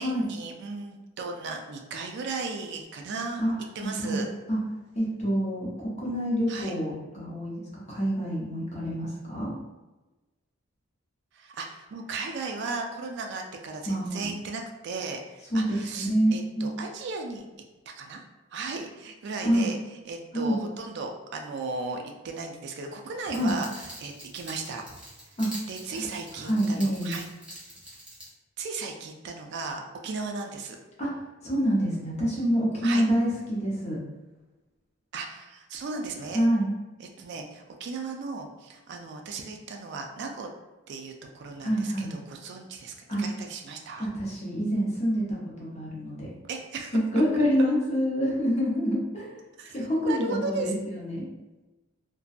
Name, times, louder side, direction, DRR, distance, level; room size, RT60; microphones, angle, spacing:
voice 1, 0.0-3.4 3.7-4.3 6.5-6.8 11.3-17.5 17.9-18.2 18.5-19.8 20.1-24.8 25.7-27.3 28.6-30.8 32.8-33.0 35.1-36.5 37.0-40.5 40.9-44.1 46.4-47.0 47.4-47.5 49.6-50.7, right 3 dB, 60° right, 3 dB, 0.3 m, -36 dB
voice 2, 4.9-9.5 13.9-14.3 15.5-16.7 19.4-19.7 20.3-20.6 23.3-23.6 25.4-25.5 26.5-27.1 31.0-31.1 31.4-34.0 36.3-36.7 41.6-42.1 43.1-43.2 44.1-46.3 46.9-49.3 49.7-51.3, equal, 35° left, -5 dB, 0.7 m, -27 dB
sound 1, 23.3-28.3, equal, 5° right, 0.6 m, -45 dB
2.6 x 2.2 x 2.4 m, 1.1 s
head